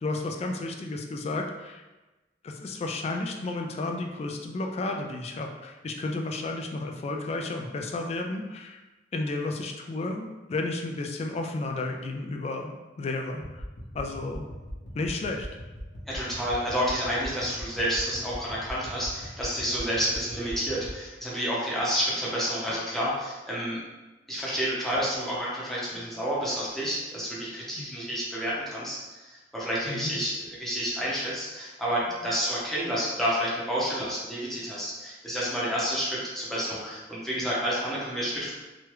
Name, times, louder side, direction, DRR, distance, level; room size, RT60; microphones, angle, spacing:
voice 1, 0.0-1.8 2.4-8.8 9.1-13.6 13.9-14.4 14.9-15.5 27.8-27.9 29.9-30.1, left 2 dB, 35° left, 3 dB, 0.3 m, -32 dB
sound 1, 13.4-20.9, equal, 75° left, 0.8 m, -41 dB
voice 2, 16.1-23.8 24.3-38.5, equal, ahead, -8 dB, 0.7 m, -30 dB
3.0 x 2.3 x 3.1 m, 1.1 s
head